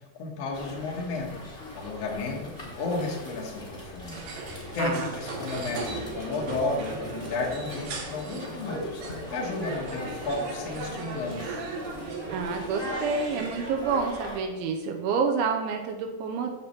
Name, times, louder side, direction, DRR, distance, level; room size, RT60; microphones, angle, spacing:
voice 1, 0.2-1.4 1.7-9.0 9.3-11.6, left 3 dB, 85° left, -1 dB, 1.3 m, -33 dB
sound 1, 0.5-14.4, left 1 dB, 50° left, 0.6 m, -41 dB
sound 2, 4.1-13.7, right 3 dB, 65° right, 2.3 m, -37 dB
voice 2, 4.8-5.1 12.3-16.5, right 5 dB, 85° right, 3 dB, 3.2 m, -28 dB
9.3 x 4.4 x 7.3 m, 1.2 s
omnidirectional pair, 5.4 m